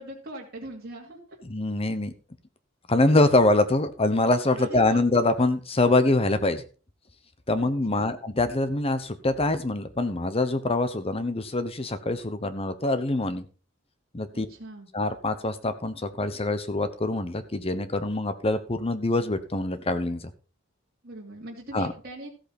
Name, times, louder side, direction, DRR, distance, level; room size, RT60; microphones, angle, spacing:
voice 1, 0.0-1.4 4.6-5.0 7.6-8.1 14.3-14.9 21.0-22.3, right 1 dB, 50° right, -3 dB, 2.7 m, -41 dB
voice 2, 1.5-2.1 2.9-6.6 7.5-13.5 14.1-14.5 14.9-20.3 21.7-21.9, left 2 dB, 30° left, 11 dB, 1.0 m, -24 dB
14.5 x 8.5 x 4.4 m, 0.36 s
head